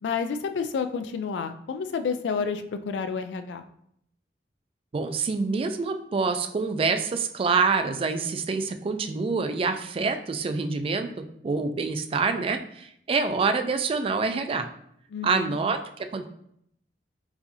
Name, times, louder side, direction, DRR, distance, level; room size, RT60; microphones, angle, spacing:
voice 1, 0.0-3.6 15.1-15.6, left 5 dB, 75° left, 9 dB, 0.3 m, -30 dB
voice 2, 4.9-11.1 11.4-14.7 15.2-16.3, right 4 dB, 30° right, 7 dB, 0.3 m, -26 dB
4.7 x 2.6 x 2.6 m, 0.72 s
head